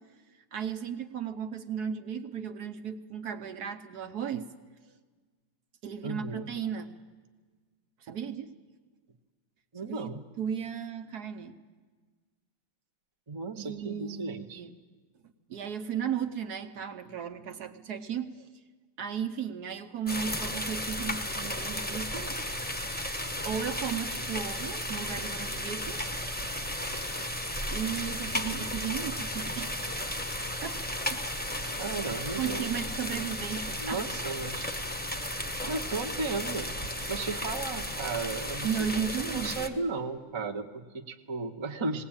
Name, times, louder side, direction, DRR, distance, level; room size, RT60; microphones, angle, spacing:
voice 1, 0.5-4.4 5.8-6.9 8.0-8.5 9.8-10.1 10.4-11.5 13.6-14.7 15.5-18.5 19.0-22.3 23.4-26.0 27.7-29.9 30.6-30.8 32.4-34.0 35.6-35.8 38.6-39.7, right 8 dB, 60° right, 6 dB, 1.4 m, -35 dB
voice 2, 6.0-6.5 9.7-10.2 13.3-14.6 31.8-32.9 33.8-34.7 35.7-36.7 37.1-39.0 39.3-42.0, right 3 dB, 20° right, 4 dB, 0.7 m, -35 dB
sound 1, 20.1-39.7, left 1 dB, 5° left, 0.8 m, -34 dB
20.0 x 18.0 x 8.8 m, 1.4 s
omnidirectional pair, 2.0 m